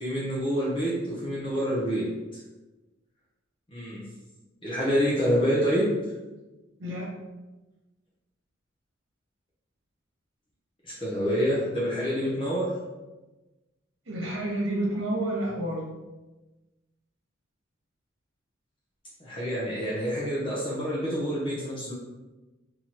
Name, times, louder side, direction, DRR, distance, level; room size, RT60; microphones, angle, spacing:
voice 1, 0.0-2.2 3.7-4.1 4.6-6.1 10.8-12.8 19.2-21.9, equal, 25° left, -7 dB, 0.7 m, -27 dB
voice 2, 6.8-7.1 14.1-15.8, right 1 dB, 70° right, -3 dB, 1.1 m, -29 dB
3.9 x 2.8 x 3.0 m, 1.1 s
head